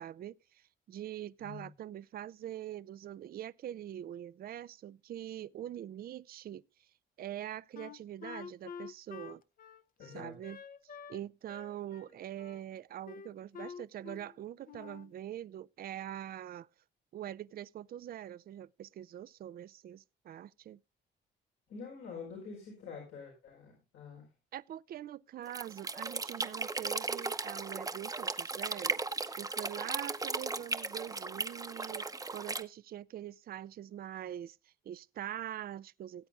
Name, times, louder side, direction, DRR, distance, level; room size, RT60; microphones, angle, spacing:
voice 1, 0.0-6.6 7.2-9.4 10.0-10.6 11.1-16.7 17.1-20.8 24.5-29.0 29.4-32.0 32.3-36.3, right 11 dB, 50° right, 0.4 m, -43 dB
voice 2, 1.4-1.7 10.0-10.4 21.7-24.3, left 5 dB, 85° left, 4.6 m, -46 dB
Wind instrument woodwind instrument, 7.7-11.2 11.5-12.6 13.1-14.3 14.7-15.1, left 7 dB, 45° left, 0.6 m, -48 dB
sound 1, 25.5-32.6, right 3 dB, 20° right, 0.8 m, -37 dB
18.0 x 8.2 x 2.4 m
cardioid pair, 90°, 20 cm